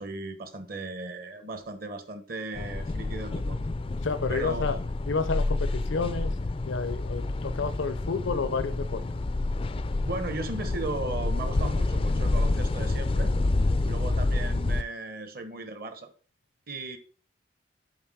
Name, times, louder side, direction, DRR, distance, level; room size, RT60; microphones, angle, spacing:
voice 1, 0.0-3.6 4.3-4.9 10.0-13.3 13.8-16.1 16.7-17.0, right 2 dB, 50° right, 1.0 m, -36 dB
sound 1, 2.5-14.8, left 2 dB, 30° left, 0.3 m, -28 dB
voice 2, 4.0-4.8 5.1-6.3 6.6-9.0, left 4 dB, 85° left, 0.6 m, -30 dB
8.0 x 3.8 x 4.9 m
head